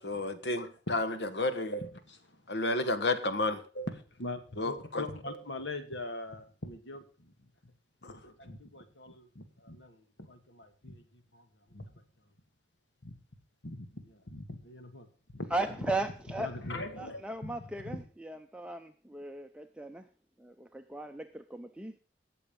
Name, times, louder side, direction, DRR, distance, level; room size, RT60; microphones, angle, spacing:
voice 1, 0.0-1.7 2.5-3.6 4.6-5.0 8.0-8.2, left 2 dB, 70° left, 1.4 m, -31 dB
voice 2, 1.7-2.4 3.7-7.3 8.2-11.8 13.0-13.1 13.6-15.1 15.3-15.5 16.4-17.5 17.9-18.0, left 1 dB, 85° left, 2.0 m, -42 dB
voice 3, 15.5-16.5 17.0-20.1 20.4-21.9, right 2 dB, 5° right, 0.6 m, -37 dB
18.0 x 7.0 x 5.3 m
head